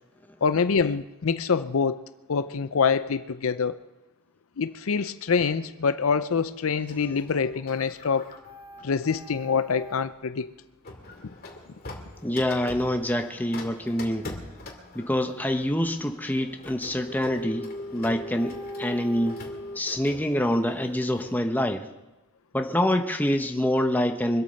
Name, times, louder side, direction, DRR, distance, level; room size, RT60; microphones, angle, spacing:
voice 1, 0.4-2.0 2.3-3.8 4.6-8.3 8.8-10.5, left 5 dB, 70° left, 12 dB, 0.6 m, -25 dB
Printer, 6.9-10.1 10.8-21.4, left 2 dB, 45° left, 2.4 m, -41 dB
voice 2, 12.2-14.3 14.9-19.4 19.7-21.9 22.5-24.4, left 1 dB, 10° left, 5 dB, 1.0 m, -26 dB
24.0 x 8.6 x 6.4 m, 1.0 s
head